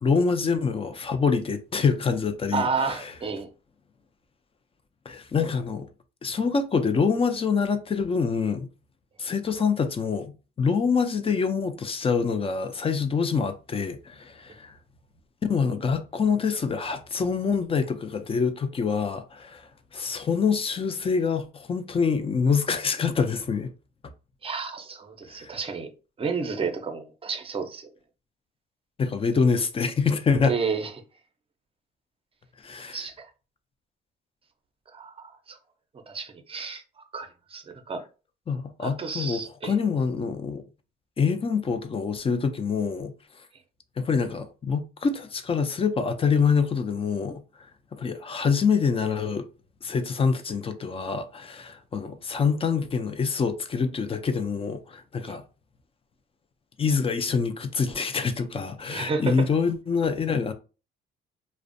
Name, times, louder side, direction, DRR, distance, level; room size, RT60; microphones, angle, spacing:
voice 1, 0.0-3.1 5.1-5.9 6.2-8.7 9.2-14.7 15.5-23.7 25.3-25.5 29.0-30.5 32.6-33.1 38.5-40.6 41.2-43.1 44.0-47.4 47.9-49.5 49.8-55.4 56.8-60.5, left 5 dB, 30° left, 0.4 m, -26 dB
voice 2, 2.5-3.5 24.4-25.9 26.2-27.9 30.4-30.9 32.9-33.3 34.9-35.6 36.1-38.0 38.8-39.7 55.3-55.4 58.9-59.5, right 5 dB, 30° right, 0.5 m, -31 dB
2.4 x 2.1 x 2.5 m
cardioid pair, 90°, 20 cm